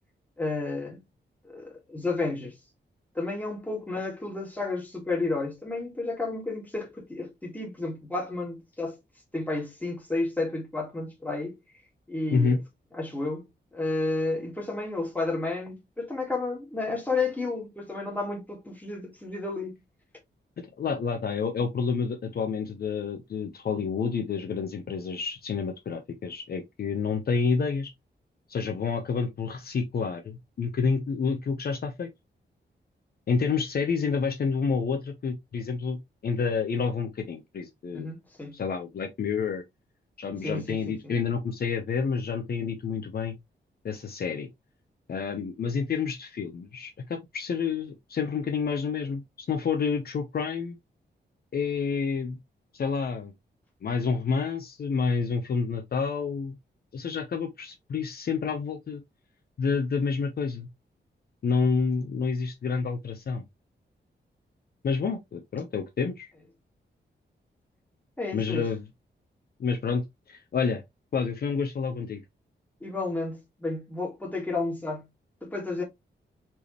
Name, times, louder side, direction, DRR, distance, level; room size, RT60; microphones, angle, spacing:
voice 1, 0.4-1.0 1.4-2.6 3.1-9.0 9.3-11.5 12.1-12.6 12.9-13.4 13.7-19.7 37.9-38.6 40.4-41.1 68.2-68.7 72.8-75.1 75.4-75.8, left 3 dB, 10° left, 1.7 m, -31 dB
voice 2, 20.8-27.9 28.5-32.1 33.3-36.0 36.2-38.1 38.5-39.6 40.2-43.4 43.8-44.5 45.1-50.8 51.5-52.4 52.7-53.3 53.8-56.5 56.9-59.0 59.6-60.7 61.4-63.4 64.8-66.3 68.3-68.8 69.6-70.8 71.1-72.2, left 5 dB, 55° left, 0.7 m, -29 dB
4.3 x 3.5 x 3.0 m
wide cardioid pair, 165°, 19 cm